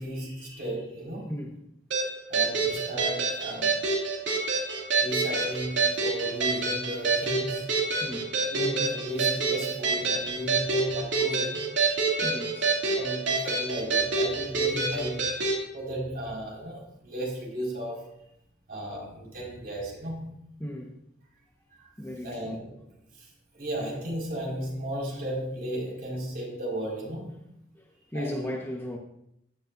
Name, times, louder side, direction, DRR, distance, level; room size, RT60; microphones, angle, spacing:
voice 1, 0.0-1.3 2.3-3.8 5.0-7.7 8.5-12.4 12.9-15.3 15.7-18.1 18.7-20.3 21.7-21.8 22.2-22.7 23.1-23.3 23.5-27.3 28.1-28.5, right 1 dB, 55° right, -3 dB, 5.4 m, -35 dB
sound 1, 1.9-15.6, right 4 dB, 80° right, 2.8 m, -27 dB
voice 2, 12.2-13.0 20.6-21.0 22.0-22.6 27.7-27.9 28.1-29.0, left 1 dB, 10° left, 0 dB, 1.3 m, -36 dB
16.0 x 12.0 x 2.7 m, 0.78 s
head